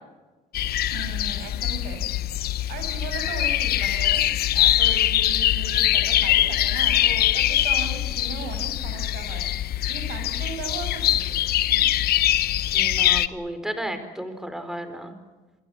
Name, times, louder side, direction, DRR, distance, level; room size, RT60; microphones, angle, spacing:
sound 1, 0.5-13.3, left 13 dB, 65° left, 1.0 m, -23 dB
voice 1, 0.9-2.0 2.7-9.5 9.9-11.4 11.7-11.9, right 6 dB, 80° right, 6 dB, 6.3 m, -37 dB
voice 2, 12.7-15.1, right 1 dB, 5° right, 8 dB, 4.5 m, -33 dB
27.5 x 22.5 x 7.2 m, 1.2 s
cardioid pair, 110°, 17 cm